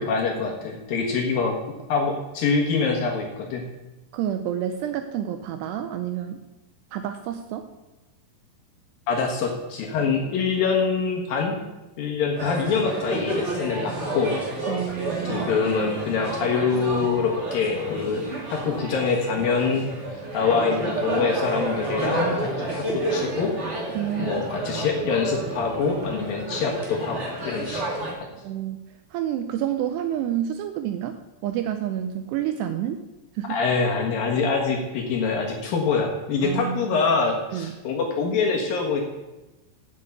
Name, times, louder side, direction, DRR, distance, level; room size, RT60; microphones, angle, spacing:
voice 1, 0.0-1.5 1.9-3.6 9.1-11.6 12.0-14.3 15.3-18.2 18.5-19.9 20.3-23.5 24.2-28.0 33.5-39.0, left 5 dB, 65° left, 1 dB, 2.6 m, -25 dB
voice 2, 4.1-6.4 6.9-7.7 14.7-15.5 24.0-24.4 28.4-28.8 29.1-33.0 33.4-33.6 36.4-37.0 37.5-37.7, right 10 dB, 80° right, 8 dB, 2.5 m, -29 dB
sound 1, 12.4-28.1, right 1 dB, 45° right, 0.9 m, -30 dB
8.2 x 7.3 x 8.2 m, 1.0 s
omnidirectional pair, 5.3 m